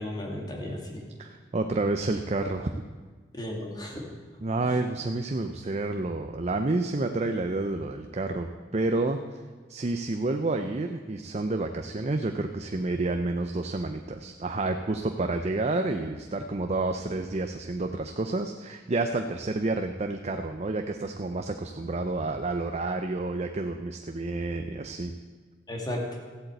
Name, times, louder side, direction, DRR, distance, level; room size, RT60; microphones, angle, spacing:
voice 1, 0.0-1.0 3.4-4.0 4.6-4.8 25.7-26.0, left 1 dB, 25° left, -1 dB, 2.3 m, -34 dB
voice 2, 1.2-2.8 4.4-8.5 8.7-9.2 9.7-25.1, right 2 dB, 35° right, 6 dB, 0.6 m, -29 dB
14.5 x 8.3 x 7.9 m, 1.4 s
head